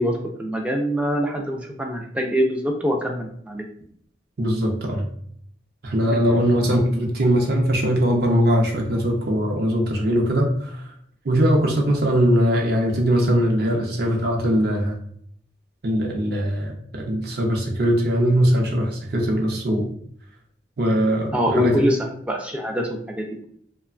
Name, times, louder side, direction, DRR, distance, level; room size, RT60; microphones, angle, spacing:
voice 1, 0.0-3.7 6.1-6.4 21.3-23.5, equal, 5° right, 1 dB, 0.3 m, -24 dB
voice 2, 4.4-5.1 5.8-10.8 11.2-15.0 15.8-19.9 20.8-21.7, equal, 55° right, 1 dB, 0.6 m, -21 dB
2.8 x 2.2 x 2.4 m, 0.65 s
head